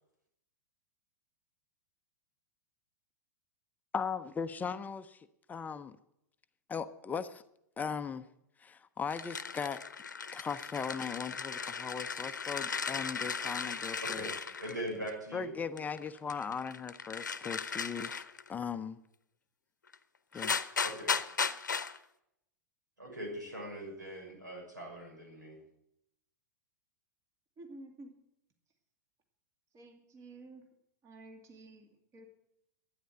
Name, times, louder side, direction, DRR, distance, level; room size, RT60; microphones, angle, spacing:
voice 1, 3.9-6.0 6.7-7.4 7.8-8.3 8.6-9.8 10.3-14.3 15.3-18.2 18.5-19.0 20.3-20.6, left 6 dB, 15° left, 10 dB, 0.6 m, -38 dB
sound 1, 9.1-15.1 15.8-18.5 19.9-20.0 20.3-22.0, left 5 dB, 85° left, 0.8 m, -36 dB
voice 2, 14.6-15.5 20.8-21.1 23.0-25.6, right 1 dB, 85° right, 0 dB, 6.4 m, -41 dB
voice 3, 27.6-28.1 29.7-30.6 31.0-32.3, right 2 dB, 30° right, 4 dB, 2.4 m, -51 dB
12.5 x 9.6 x 7.9 m, 0.79 s
figure-of-eight pair, 95°, 10 cm